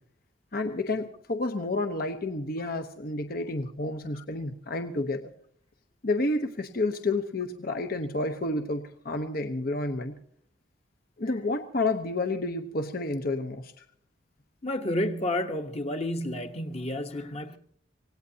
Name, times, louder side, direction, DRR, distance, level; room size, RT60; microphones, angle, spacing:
voice 1, 0.5-5.2 6.0-10.2 11.2-13.7, left 2 dB, 50° left, 0.9 m, -30 dB
voice 2, 14.6-17.6, left 1 dB, 35° left, 1.1 m, -30 dB
25.5 x 18.0 x 2.8 m
head